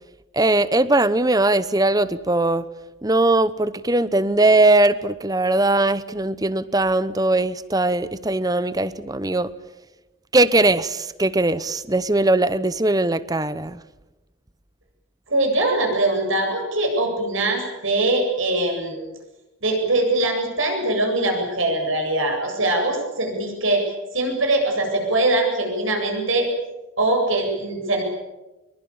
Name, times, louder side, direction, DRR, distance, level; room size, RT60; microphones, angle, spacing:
voice 1, 0.3-2.6 3.0-9.5 10.3-13.8, right 2 dB, 15° right, 15 dB, 0.9 m, -20 dB
voice 2, 15.3-19.1 19.6-23.8 24.1-26.5 27.0-28.0, right 2 dB, 70° right, 3 dB, 8.0 m, -22 dB
24.5 x 23.0 x 8.8 m, 1.0 s
head